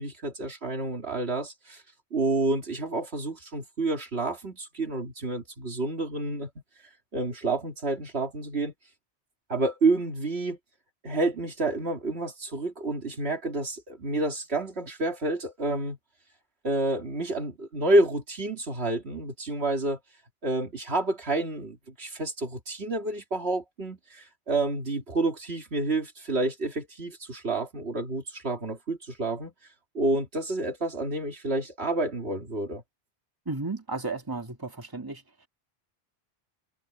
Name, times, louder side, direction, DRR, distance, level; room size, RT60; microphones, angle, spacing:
voice 1, 0.0-1.8 2.1-6.5 7.1-8.7 9.5-10.6 11.0-16.0 16.6-20.0 20.4-29.5 29.9-32.8, right 2 dB, 75° right, 2.7 m, -29 dB
voice 2, 33.5-35.2, right 3 dB, 20° right, 2.0 m, -33 dB
omnidirectional pair, 1.1 m